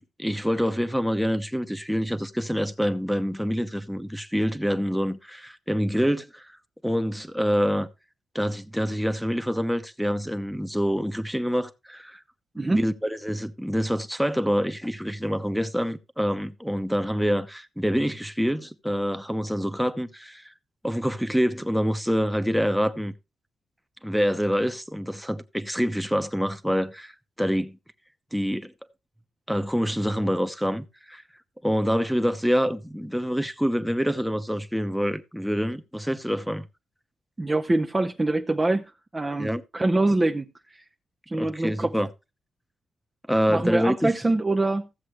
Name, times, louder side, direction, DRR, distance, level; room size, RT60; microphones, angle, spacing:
voice 1, 0.0-6.5 6.8-7.9 8.3-12.2 12.6-20.4 20.8-23.1 24.0-27.1 27.4-27.8 28.3-28.7 29.5-31.2 31.6-36.7 39.4-39.6 41.3-42.1 43.3-44.1, equal, ahead, 0.9 m, -26 dB
voice 2, 37.4-40.5 41.3-41.9 43.5-44.9, right 2 dB, 20° right, 0.6 m, -24 dB
15.0 x 7.5 x 3.2 m
cardioid pair, 115°, 0 cm